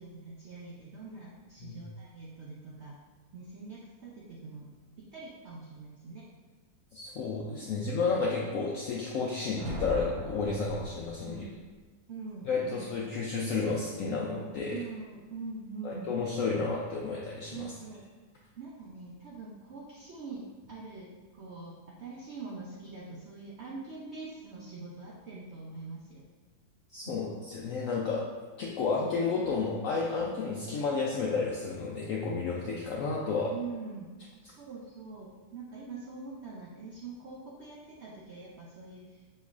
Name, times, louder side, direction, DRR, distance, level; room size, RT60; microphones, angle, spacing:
voice 1, 0.0-3.0 3.3-4.7 5.1-6.3 11.2-11.5 12.1-12.8 14.7-16.2 17.5-18.1 18.6-26.3 27.0-27.1 33.5-34.1 34.4-39.2, right 4 dB, 85° right, -4 dB, 0.5 m, -44 dB
voice 2, 6.9-11.3 12.5-14.8 15.8-17.7 26.9-28.2 28.6-33.5, left 4 dB, 80° left, -3 dB, 0.7 m, -31 dB
Thunder, 9.6-11.8, left 1 dB, 70° right, 1.2 m, -39 dB
6.4 x 3.0 x 2.4 m, 1.3 s
omnidirectional pair, 1.9 m